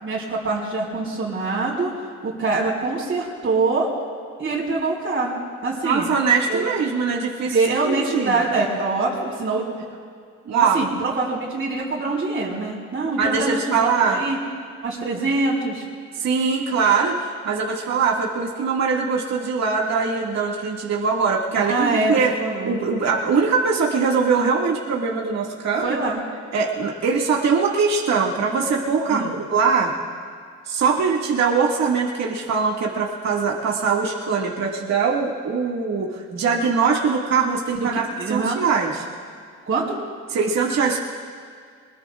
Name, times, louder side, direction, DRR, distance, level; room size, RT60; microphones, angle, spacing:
voice 1, 0.0-1.9 2.2-3.9 4.4-6.0 6.5-6.7 7.5-9.6 10.6-14.4 14.8-15.8 21.6-22.8 25.8-26.2 29.1-29.3 37.7-37.9 38.2-38.6 39.6-40.0, right 3 dB, 35° right, -8 dB, 4.5 m, -24 dB
voice 2, 5.8-7.5 7.8-8.4 10.5-10.8 13.2-14.2 16.2-22.3 22.6-25.9 26.5-29.9 30.7-38.0 38.3-39.0 40.3-41.0, right 5 dB, 60° right, -3 dB, 2.2 m, -22 dB
24.0 x 21.0 x 2.5 m, 2.2 s
cardioid pair, 90°, 30 cm